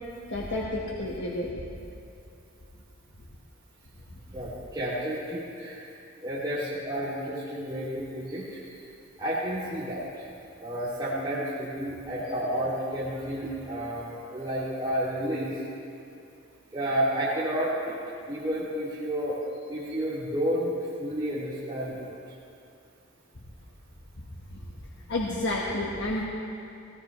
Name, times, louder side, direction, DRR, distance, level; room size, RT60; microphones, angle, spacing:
voice 1, 0.3-1.6 6.9-7.2 12.2-12.4 25.1-26.2, left 1 dB, 60° left, -4 dB, 1.5 m, -30 dB
voice 2, 4.3-5.8 6.2-8.6 9.2-10.0 10.6-15.5 16.7-18.0 18.3-19.4 19.7-20.7 21.0-22.1, equal, 20° right, -11 dB, 2.9 m, -31 dB
20.5 x 18.5 x 3.3 m, 2.6 s
head